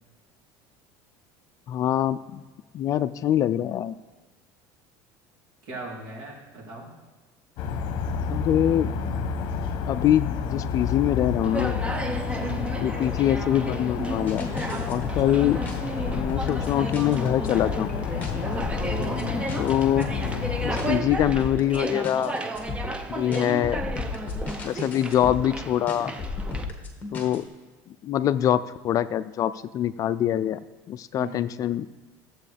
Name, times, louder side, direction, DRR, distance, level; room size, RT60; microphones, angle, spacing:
voice 1, 1.7-2.4 2.7-3.9 8.3-8.9 9.9-11.8 12.8-14.5 14.9-15.6 16.1-17.9 19.6-20.1 20.6-22.4 23.1-23.8 24.6-26.1 27.1-27.4 28.0-30.6 30.9-31.9, left 11 dB, 40° left, 14 dB, 0.3 m, -24 dB
voice 2, 5.6-6.9 12.3-12.7 15.0-15.5 19.0-19.4 23.4-23.6 31.1-31.4, right 3 dB, 60° right, -4 dB, 3.3 m, -38 dB
sound 1, 7.6-21.0, left 7 dB, 60° left, 0.9 m, -30 dB
Conversation, 11.4-26.6, right 1 dB, 15° right, 0.7 m, -33 dB
sound 2, 14.3-27.4, left 3 dB, 20° left, 1.7 m, -34 dB
15.0 x 7.7 x 3.4 m, 1.3 s
cardioid pair, 125°, 9 cm